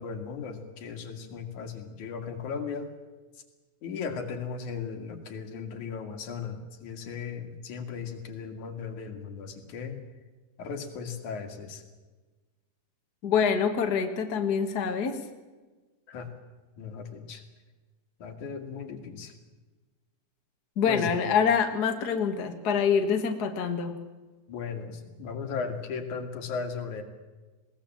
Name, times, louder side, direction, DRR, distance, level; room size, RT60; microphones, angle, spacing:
voice 1, 0.0-2.9 3.8-10.0 10.6-11.8 16.1-16.3 16.8-17.4 18.2-19.3 20.8-21.1 24.5-27.0, left 5 dB, 60° left, 5 dB, 3.3 m, -36 dB
voice 2, 13.2-15.2 20.8-23.9, left 6 dB, 45° left, 5 dB, 1.3 m, -25 dB
21.5 x 18.0 x 7.5 m, 1.3 s
omnidirectional pair, 4.1 m